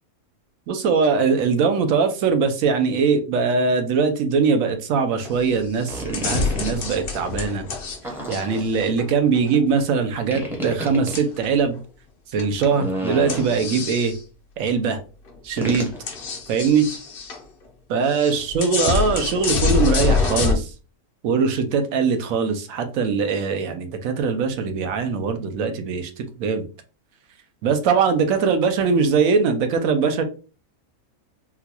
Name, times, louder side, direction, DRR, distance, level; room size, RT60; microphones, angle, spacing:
voice 1, 0.7-7.6 8.3-11.8 12.3-14.1 14.6-15.0 15.4-15.9 16.5-16.9 17.9-20.7 21.2-26.6 27.6-30.2, right 5 dB, 75° right, 7 dB, 1.0 m, -21 dB
sound 1, 5.2-5.5 5.8-8.0 8.3-9.6 11.1-11.7 12.4-12.7 13.3-14.2 14.7-14.8 15.3-15.4 15.6-17.4 18.1-20.6, left 5 dB, 55° left, 0.6 m, -26 dB
sound 2, 5.9-6.9 8.0-8.9 10.3-11.2 12.6-13.9 15.6-16.0, equal, ahead, 0.5 m, -31 dB
3.8 x 2.2 x 2.8 m, 0.34 s
omnidirectional pair, 1.5 m